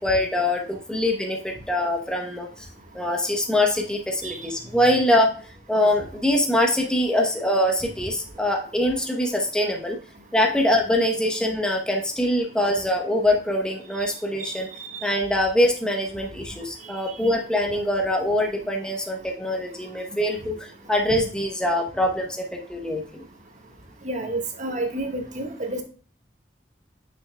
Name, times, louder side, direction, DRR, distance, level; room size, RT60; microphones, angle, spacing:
voice 1, 0.0-2.7 2.9-5.3 5.7-10.0 10.3-14.7 15.0-23.2, left 1 dB, 5° left, 1 dB, 0.8 m, -23 dB
voice 2, 24.0-25.8, right 2 dB, 45° right, 3 dB, 1.3 m, -29 dB
7.0 x 6.3 x 2.2 m, 0.41 s
head